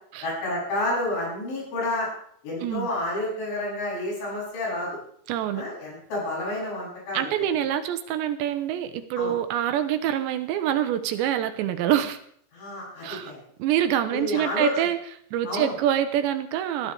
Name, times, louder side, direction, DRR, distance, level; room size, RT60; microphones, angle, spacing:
voice 1, 0.2-2.1 2.4-5.0 5.5-7.4 9.2-9.4 12.5-13.3 14.1-14.9 15.5-15.7, left 1 dB, 75° left, -5 dB, 10.5 m, -30 dB
voice 2, 5.3-5.6 7.1-12.2 13.0-13.3 13.6-15.0 15.3-16.9, right 10 dB, 80° right, 10 dB, 3.0 m, -25 dB
21.5 x 14.5 x 3.4 m, 0.64 s
omnidirectional pair, 5.3 m